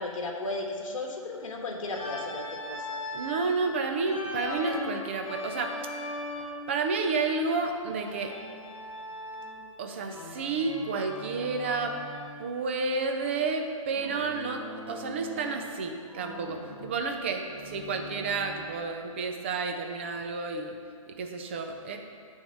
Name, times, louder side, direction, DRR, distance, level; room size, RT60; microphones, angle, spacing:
voice 1, 0.0-3.0, left 2 dB, 65° left, 1 dB, 1.4 m, -35 dB
Organ, 1.9-3.5 4.1-6.7 8.0-9.7 10.1-12.4 13.9-15.7 16.1-18.8, left 1 dB, 15° left, 0.9 m, -39 dB
voice 2, 3.1-5.7 6.7-8.3 9.8-11.9 12.4-20.7 21.1-22.0, right 4 dB, 20° right, 4 dB, 0.4 m, -31 dB
9.2 x 3.6 x 6.5 m, 2.2 s
hypercardioid pair, 165°, 18 cm